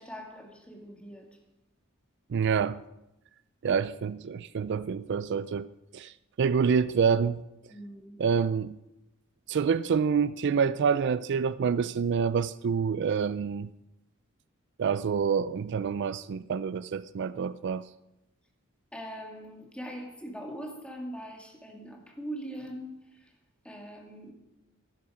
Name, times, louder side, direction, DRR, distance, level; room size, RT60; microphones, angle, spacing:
voice 1, 0.0-1.4 7.7-8.2 18.9-23.3 23.6-24.3, equal, 5° left, 2.4 m, -42 dB
voice 2, 2.3-2.8 3.6-5.7 5.9-7.4 8.2-8.8 9.5-13.7 14.8-17.9, right 6 dB, 55° right, 0.4 m, -27 dB
16.5 x 11.5 x 5.0 m
head